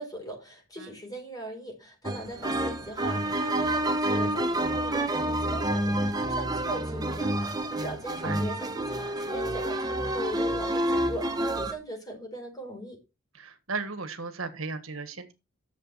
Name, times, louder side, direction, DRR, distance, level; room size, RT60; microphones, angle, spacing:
voice 1, 0.0-13.0, right 1 dB, 20° left, 4.6 m, -40 dB
sound 1, 2.0-11.7, right 1 dB, 20° right, 1.0 m, -28 dB
voice 2, 13.3-15.3, right 4 dB, 90° right, 1.6 m, -35 dB
10.5 x 7.3 x 4.2 m
head